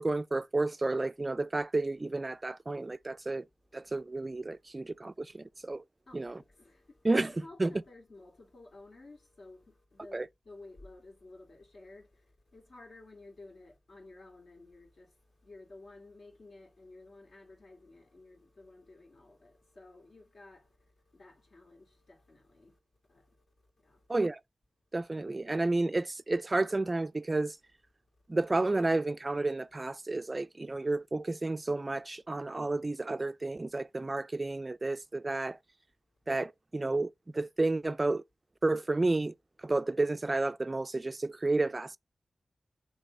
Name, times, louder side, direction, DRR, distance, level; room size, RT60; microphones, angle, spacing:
voice 1, 0.0-3.4 3.7-5.8 6.1-6.4 7.0-7.7 10.1-10.3 24.1-24.4 24.9-27.6 28.3-35.6 36.3-38.2 38.6-39.3 39.6-42.0, right 2 dB, 30° right, 0.3 m, -31 dB
voice 2, 6.1-22.8 23.1-23.4 23.8-24.1, left 2 dB, 65° left, 2.6 m, -54 dB
6.6 x 3.2 x 5.2 m
wide cardioid pair, 115°, 0 cm